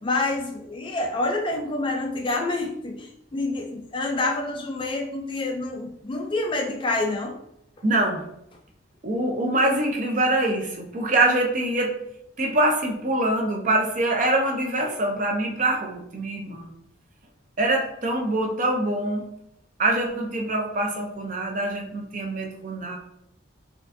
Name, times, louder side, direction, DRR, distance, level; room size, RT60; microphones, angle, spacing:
voice 1, 0.0-7.4 7.8-7.9, left 2 dB, 25° left, 2 dB, 0.3 m, -27 dB
voice 2, 7.8-8.2 9.0-11.9 12.4-16.7 17.6-19.2 19.8-23.0, right 2 dB, 40° right, 2 dB, 0.6 m, -24 dB
4.3 x 2.5 x 2.6 m, 0.78 s
head